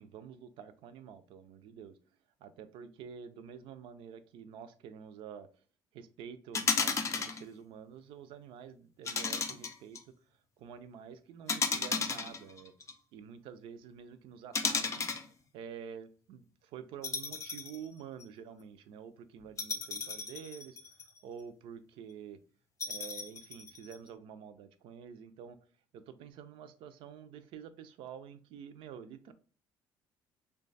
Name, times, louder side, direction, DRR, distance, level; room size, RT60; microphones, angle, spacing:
voice 1, 0.0-2.0 2.4-5.5 5.9-10.0 10.6-12.7 13.1-15.1 15.5-20.8 21.2-22.4 22.9-25.6 25.9-29.3, right 7 dB, 80° right, 11 dB, 0.4 m, -48 dB
sound 1, 6.5-7.4 9.1-10.0 11.5-12.9 14.5-15.3 17.0-17.8 18.2-18.3 19.6-21.2 22.8-23.9, left 5 dB, 35° left, 0.5 m, -33 dB
3.1 x 2.3 x 3.9 m, 0.41 s
cardioid pair, 100°, 9 cm